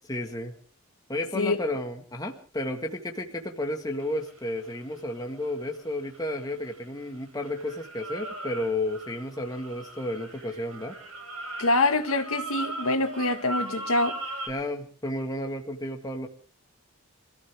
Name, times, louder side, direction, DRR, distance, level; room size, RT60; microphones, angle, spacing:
voice 1, 0.1-0.5 1.1-11.0 14.5-16.3, left 1 dB, 15° left, 1.9 m, -32 dB
sound 1, 4.0-7.1 7.4-14.5, right 2 dB, 70° right, 6.0 m, -38 dB
voice 2, 11.6-14.2, left 2 dB, 75° left, 2.0 m, -25 dB
26.0 x 15.0 x 3.7 m
head